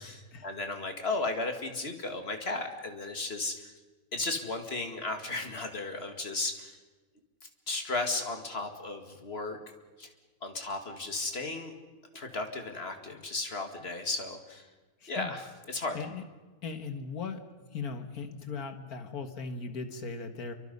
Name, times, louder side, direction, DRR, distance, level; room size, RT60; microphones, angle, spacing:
voice 1, 0.0-3.7 4.1-6.8 7.7-9.6 10.0-10.1 10.4-11.7 12.1-14.7 15.1-16.0, left 3 dB, 45° left, 5 dB, 2.5 m, -35 dB
voice 2, 15.0-15.4 15.9-16.2 16.6-17.4 17.7-20.5, left 5 dB, 90° left, 7 dB, 2.1 m, -38 dB
28.0 x 24.0 x 5.5 m, 1.3 s
omnidirectional pair, 1.5 m